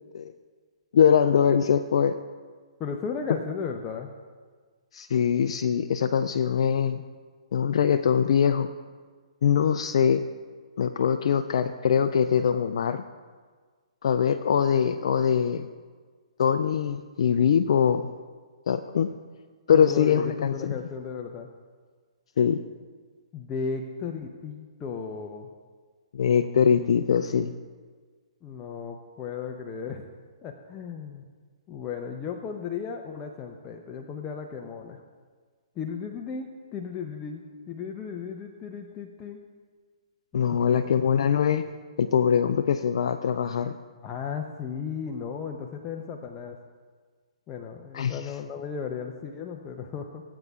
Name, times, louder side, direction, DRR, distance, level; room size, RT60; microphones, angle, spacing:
voice 1, 0.9-2.2 4.9-7.0 7.5-8.7 9.4-10.2 10.8-13.0 14.0-15.7 16.4-18.1 18.7-19.1 19.7-20.7 22.4-22.6 26.1-27.5 40.3-41.7 42.0-43.7 47.9-48.2, left 7 dB, 65° left, 9 dB, 0.4 m, -22 dB
voice 2, 2.8-4.2 19.7-21.5 23.3-25.5 28.4-30.0 30.4-31.3 31.7-35.0 35.7-39.4 40.5-40.8 44.0-46.6 47.5-50.2, left 6 dB, 25° left, 2 dB, 0.7 m, -35 dB
19.5 x 8.1 x 2.4 m, 1.5 s
hypercardioid pair, 130°, 3 cm